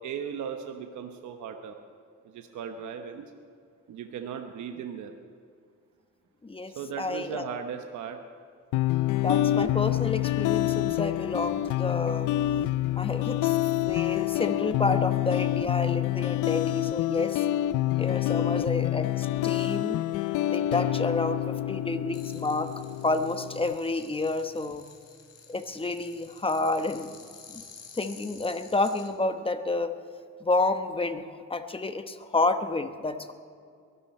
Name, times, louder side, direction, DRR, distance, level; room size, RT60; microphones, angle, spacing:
voice 1, 0.0-1.8 2.2-3.2 3.9-5.1 6.7-8.2 18.3-18.6, right 7 dB, 75° right, 5 dB, 1.1 m, -37 dB
voice 2, 6.4-7.5 9.2-12.3 13.0-13.6 13.9-17.4 18.0-20.0 20.5-22.7 23.0-24.8 25.5-27.2 27.5-27.6 27.9-30.0 30.4-33.3, left 2 dB, 20° left, 8 dB, 1.0 m, -29 dB
sound 1, 8.7-23.7, left 14 dB, 90° left, 0.5 m, -27 dB
sound 2, 22.1-29.1, left 6 dB, 60° left, 3.2 m, -51 dB
22.5 x 12.5 x 4.3 m, 2.3 s
cardioid pair, 90°, 30 cm